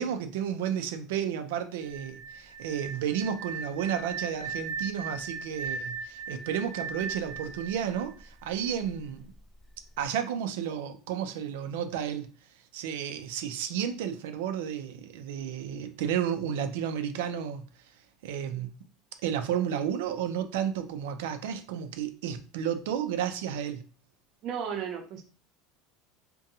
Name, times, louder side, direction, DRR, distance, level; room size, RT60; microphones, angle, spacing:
voice 1, 0.0-9.3 10.0-12.3 12.7-17.7 18.2-18.9 19.2-23.8, right 8 dB, 90° right, 0.4 m, -32 dB
sound 1, 1.8-8.7, right 4 dB, 15° left, 0.6 m, -38 dB
voice 2, 24.4-25.2, right 7 dB, 50° right, 0.6 m, -34 dB
2.7 x 2.2 x 2.7 m
supercardioid pair, 135°, 0 cm